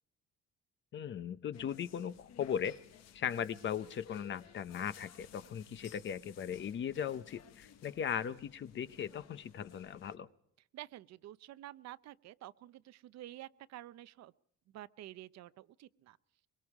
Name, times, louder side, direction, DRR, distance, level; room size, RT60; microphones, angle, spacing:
voice 1, 0.9-2.8 3.1-10.3, left 8 dB, 40° left, 14 dB, 0.7 m, -38 dB
sound 1, 1.5-10.2, left 9 dB, 65° left, 1.3 m, -57 dB
voice 2, 10.7-14.3 14.7-16.2, right 14 dB, 65° right, 15 dB, 0.7 m, -50 dB
23.5 x 22.5 x 4.8 m, 0.69 s
cardioid pair, 160°, 29 cm